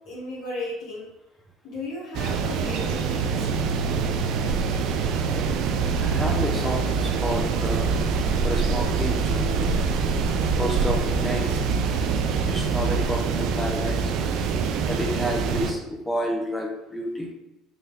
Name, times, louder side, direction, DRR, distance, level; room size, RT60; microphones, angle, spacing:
voice 1, 0.1-1.1 1.6-3.5, left 2 dB, 65° left, -7 dB, 1.2 m, -35 dB
sound 1, 2.1-15.7, right 5 dB, 65° right, 0.3 m, -24 dB
voice 2, 6.0-7.9 8.4-9.9 10.6-11.6 12.4-14.1 14.9-17.3, equal, 5° left, 0 dB, 0.7 m, -30 dB
3.9 x 2.6 x 3.1 m, 0.92 s
hypercardioid pair, 80°, 0 cm